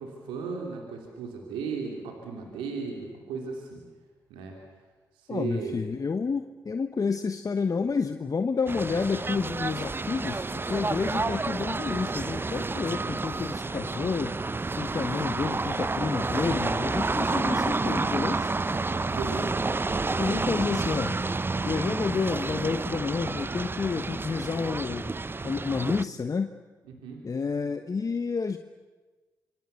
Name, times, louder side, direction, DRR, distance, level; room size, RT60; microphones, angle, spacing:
voice 1, 0.0-3.8 4.3-4.6 5.1-5.8 19.1-19.6 26.9-27.3, right 5 dB, 85° right, 1 dB, 3.3 m, -36 dB
voice 2, 5.3-14.3 14.8-18.5 20.2-21.2 21.6-25.1 25.4-26.5 27.2-28.6, left 5 dB, 45° left, 8 dB, 1.3 m, -30 dB
sound 1, 8.7-26.0, right 3 dB, 25° right, 0.7 m, -30 dB
26.0 x 25.0 x 7.0 m, 1.3 s
supercardioid pair, 45°, 9 cm